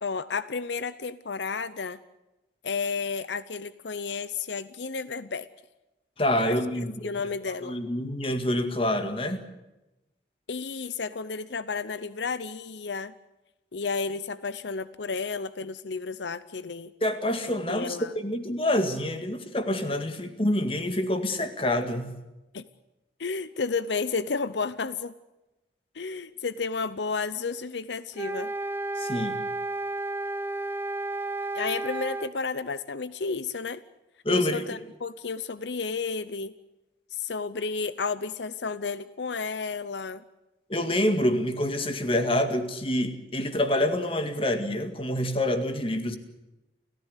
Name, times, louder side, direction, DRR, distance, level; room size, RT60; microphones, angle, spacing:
voice 1, 0.0-2.0 2.6-5.5 6.4-6.6 7.0-7.8 10.5-13.1 13.7-16.9 17.7-18.1 22.5-22.6 23.2-25.1 25.9-28.5 31.5-33.8 34.3-36.5 37.1-40.2, left 4 dB, 80° left, 15 dB, 0.7 m, -32 dB
voice 2, 6.2-7.1 7.6-9.4 17.0-22.2 29.0-29.4 34.3-34.6 40.7-46.2, left 1 dB, 30° left, 8 dB, 2.0 m, -27 dB
sound 1, 28.1-32.3, right 2 dB, 10° right, 0.7 m, -32 dB
29.5 x 15.0 x 8.2 m, 1.0 s
head